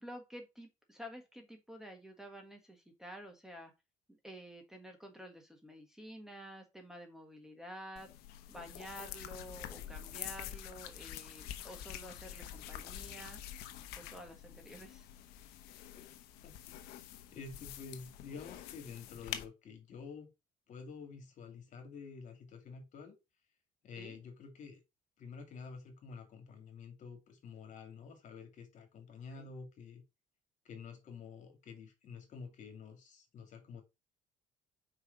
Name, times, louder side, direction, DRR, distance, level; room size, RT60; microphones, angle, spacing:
voice 1, 0.0-3.7 4.1-8.1 8.5-13.4 14.0-15.1 24.0-24.1 29.4-29.5, equal, 5° right, 1.6 m, -50 dB
sound 1, 8.0-19.5, left 11 dB, 85° left, 0.9 m, -47 dB
voice 2, 17.3-20.3 20.7-23.1 23.8-24.8 25.2-30.0 30.6-33.8, left 5 dB, 50° left, 2.5 m, -49 dB
5.0 x 4.7 x 5.3 m
cardioid pair, 120°, 16 cm